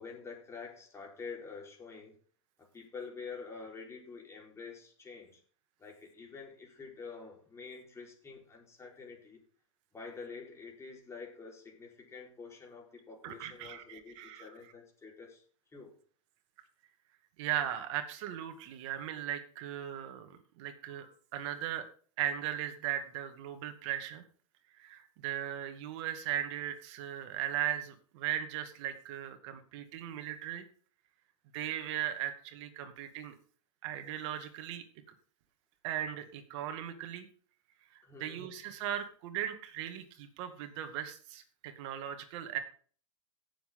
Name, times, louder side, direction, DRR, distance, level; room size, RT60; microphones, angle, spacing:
voice 1, 0.0-2.2 2.6-5.4 5.8-9.4 9.9-15.4 15.7-16.0 38.0-38.5, left 4 dB, 15° left, -1 dB, 4.4 m, -47 dB
voice 2, 13.2-14.4 17.4-21.9 22.2-24.2 24.7-30.7 31.5-33.3 33.8-34.8 35.8-37.3 37.9-42.6, right 11 dB, 60° right, 7 dB, 2.3 m, -38 dB
17.5 x 7.5 x 3.8 m, 0.44 s
hypercardioid pair, 125°, 17 cm